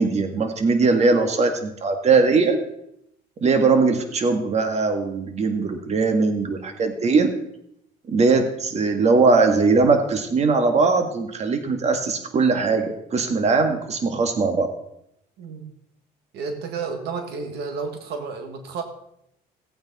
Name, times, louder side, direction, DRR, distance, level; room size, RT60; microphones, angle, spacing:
voice 1, 0.0-2.6 3.4-7.3 8.1-14.7, right 4 dB, 40° right, 6 dB, 1.7 m, -20 dB
voice 2, 15.4-15.7 16.3-18.8, right 5 dB, 80° right, 5 dB, 1.7 m, -31 dB
17.0 x 8.9 x 4.1 m, 0.77 s
cardioid pair, 110°, 17 cm